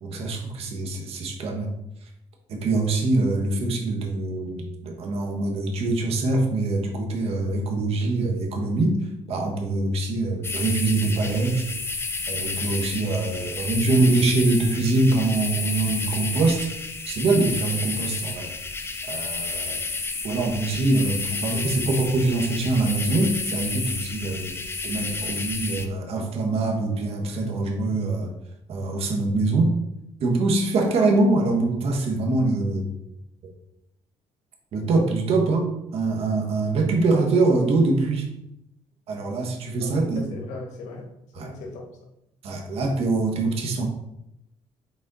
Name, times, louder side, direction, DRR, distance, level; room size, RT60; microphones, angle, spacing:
voice 1, 0.0-1.7 2.5-11.7 12.3-16.7 17.1-18.5 19.1-19.8 20.2-24.5 24.8-28.3 28.7-29.7 30.2-32.9 33.4-33.5 34.7-38.3 39.1-40.2 41.4-41.5 42.4-43.9, right 2 dB, 60° right, 2 dB, 1.4 m, -24 dB
sound 1, 10.4-25.9, left 3 dB, 20° left, 0.6 m, -31 dB
voice 2, 39.8-41.9, left 3 dB, 90° left, 0 dB, 1.4 m, -38 dB
6.4 x 4.2 x 4.1 m, 0.82 s
cardioid pair, 120°, 12 cm